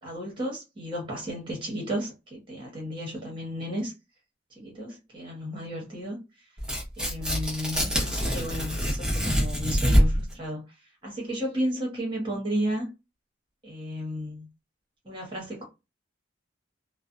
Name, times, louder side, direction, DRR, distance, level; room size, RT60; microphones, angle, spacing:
voice 1, 0.0-3.9 4.6-6.2 7.0-10.6 11.0-12.9 13.6-14.5 15.0-15.6, equal, 25° right, 1.0 m, -33 dB
Tearing, 6.6-10.3, equal, 5° right, 0.8 m, -25 dB
2.4 x 2.1 x 2.5 m
head